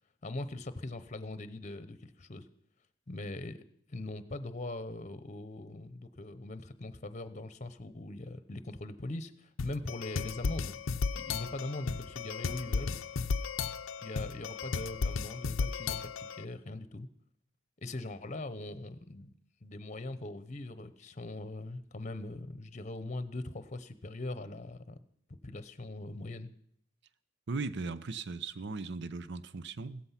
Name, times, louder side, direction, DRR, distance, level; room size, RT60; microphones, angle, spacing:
voice 1, 0.2-2.5 3.1-3.6 3.9-10.8 11.1-13.0 14.0-17.1 17.8-19.3 19.6-25.0 25.4-26.5, left 2 dB, 35° left, 0.9 m, -41 dB
sound 1, 9.6-16.4, left 4 dB, 75° left, 0.6 m, -35 dB
voice 2, 27.5-30.0, right 3 dB, 60° right, 0.7 m, -38 dB
16.0 x 14.0 x 5.8 m
head